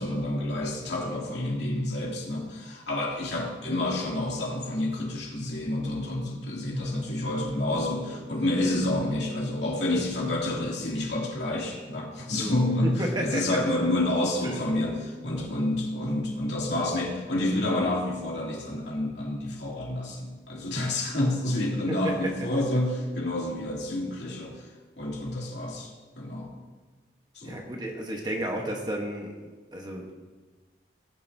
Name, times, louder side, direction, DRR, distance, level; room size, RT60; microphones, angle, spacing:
voice 1, 0.0-24.5 25.0-25.9 26.2-26.5 27.3-27.6, left 1 dB, 85° left, -3 dB, 2.7 m, -29 dB
voice 2, 12.8-13.4 15.3-15.5 22.0-22.1 27.4-30.1, right 1 dB, 25° right, 1 dB, 1.1 m, -32 dB
17.5 x 9.1 x 2.7 m, 1.3 s
head